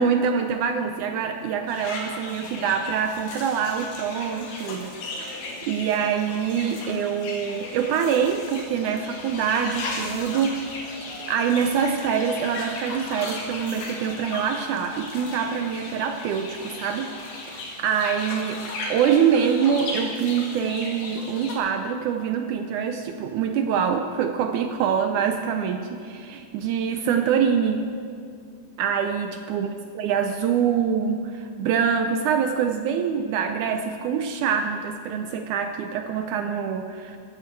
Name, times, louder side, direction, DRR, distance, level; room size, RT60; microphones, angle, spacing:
voice 1, 0.0-10.6 11.3-17.1 17.5-18.6 18.9-27.9 28.8-29.7 30.0-37.2, right 7 dB, 75° right, 6 dB, 1.9 m, -25 dB
sound 1, 1.7-21.6, left 2 dB, 70° left, 3.6 m, -36 dB
16.0 x 14.5 x 4.6 m, 2.3 s
omnidirectional pair, 4.0 m